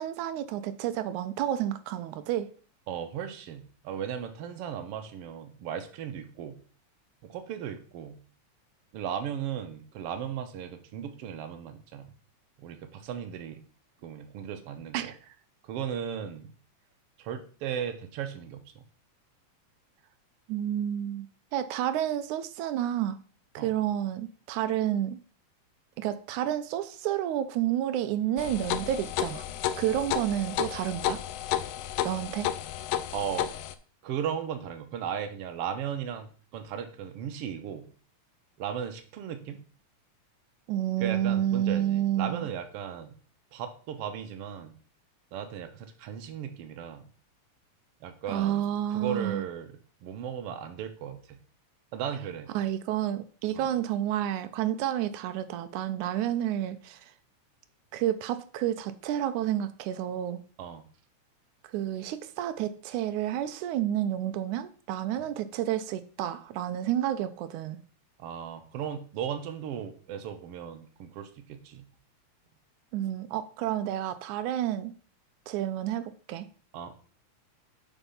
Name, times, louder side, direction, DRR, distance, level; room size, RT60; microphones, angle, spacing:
voice 1, 0.0-2.5 14.9-15.2 20.5-21.3 21.5-23.2 23.6-25.2 26.0-29.5 29.8-31.2 32.0-32.5 40.7-42.5 48.3-49.4 52.5-57.1 57.9-60.4 61.7-67.8 72.9-74.9 75.5-76.5, right 11 dB, 90° right, 2.1 m, -30 dB
voice 2, 2.9-6.6 7.2-8.2 8.9-12.1 12.6-13.6 14.0-15.1 15.6-16.5 17.2-18.8 23.6-23.7 33.1-33.5 34.0-37.9 38.6-39.6 41.0-43.2 43.5-44.8 45.3-47.1 48.0-51.4 51.9-52.5 53.5-53.7 60.6-60.9 65.2-65.3 68.2-71.9 76.7-76.9, right 8 dB, 65° right, 1.7 m, -36 dB
sound 1, 28.4-33.7, left 11 dB, 85° left, 1.3 m, -32 dB
7.1 x 5.5 x 5.5 m
omnidirectional pair, 3.4 m